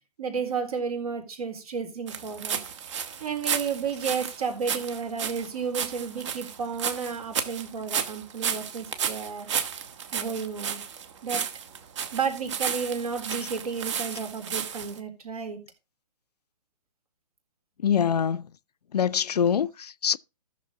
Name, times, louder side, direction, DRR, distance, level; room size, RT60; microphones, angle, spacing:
voice 1, 0.2-2.6 3.2-9.5 10.1-10.8 11.2-11.4 12.1-15.6, right 6 dB, 65° right, 3.8 m, -32 dB
sound 1, 2.1-15.0, right 7 dB, 45° right, 1.4 m, -33 dB
voice 2, 17.8-18.5 18.9-20.2, left 8 dB, 75° left, 0.5 m, -24 dB
14.5 x 6.6 x 3.7 m
figure-of-eight pair, 135°, 21 cm